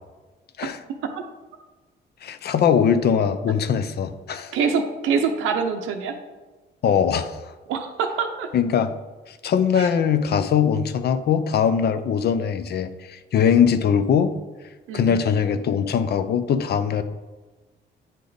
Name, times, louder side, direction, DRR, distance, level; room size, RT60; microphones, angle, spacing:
voice 1, 2.2-4.6 6.8-7.4 8.5-8.9 9.3-14.3 14.9-17.0, left 7 dB, 55° left, 11 dB, 0.5 m, -21 dB
voice 2, 4.5-6.1 7.7-8.5 9.7-9.9 14.9-15.2, right 5 dB, 90° right, 4 dB, 0.7 m, -25 dB
9.1 x 3.4 x 3.9 m, 1.3 s
cardioid pair, 90°, 20 cm